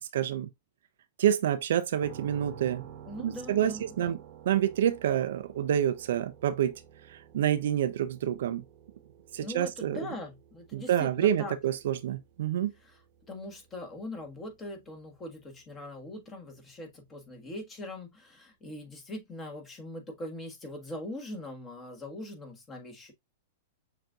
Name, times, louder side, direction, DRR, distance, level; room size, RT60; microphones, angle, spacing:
voice 1, 0.1-0.5 1.2-2.9 3.2-4.2 4.5-6.8 7.1-8.6 9.3-10.0 10.7-12.7, right 10 dB, 70° right, 0.4 m, -28 dB
sound 1, 2.0-15.8, right 8 dB, 50° right, 0.8 m, -51 dB
voice 2, 3.0-4.2 9.4-11.6 13.3-23.1, left 1 dB, 20° left, 1.5 m, -41 dB
6.6 x 2.6 x 2.4 m
hypercardioid pair, 120°, 0 cm